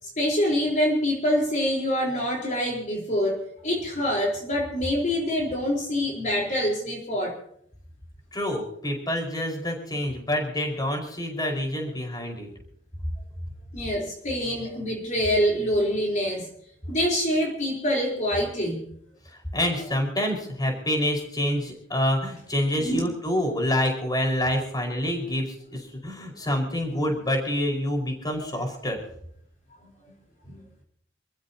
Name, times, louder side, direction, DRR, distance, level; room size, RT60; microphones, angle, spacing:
voice 1, 0.0-7.4 13.7-16.5 16.9-18.8 22.8-23.1 28.4-28.5 30.0-30.1 30.5-30.6, equal, 40° left, -1 dB, 4.3 m, -25 dB
voice 2, 8.3-12.5 19.3-29.0, left 1 dB, 20° left, 3 dB, 5.2 m, -27 dB
28.0 x 15.5 x 2.9 m, 0.67 s
head